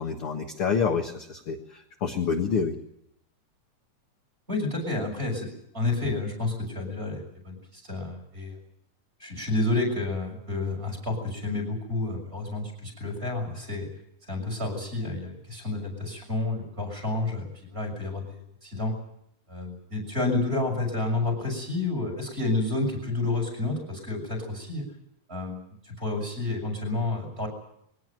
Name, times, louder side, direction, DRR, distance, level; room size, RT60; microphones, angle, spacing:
voice 1, 0.0-2.7, left 6 dB, 50° left, 3 dB, 2.1 m, -28 dB
voice 2, 4.5-5.5 5.7-8.6 9.2-13.9 14.3-18.9 19.5-24.8 25.3-27.5, left 2 dB, 15° right, 4 dB, 6.7 m, -30 dB
22.0 x 18.0 x 9.1 m, 0.74 s
omnidirectional pair, 3.9 m